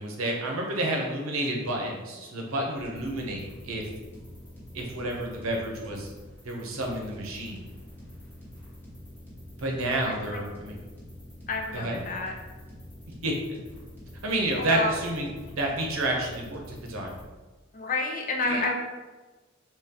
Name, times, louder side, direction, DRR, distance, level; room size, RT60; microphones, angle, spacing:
voice 1, 0.0-3.9 4.7-6.1 6.4-7.6 9.6-10.7 11.7-12.0 13.2-13.3 14.2-17.1 18.4-18.6, right 1 dB, 85° right, 0 dB, 0.8 m, -30 dB
sound 1, 2.8-17.3, left 1 dB, 10° left, 0.9 m, -46 dB
voice 2, 11.5-12.3 14.6-15.0 17.7-18.7, left 3 dB, 40° left, 1 dB, 0.5 m, -29 dB
3.7 x 2.9 x 2.9 m, 1.3 s
head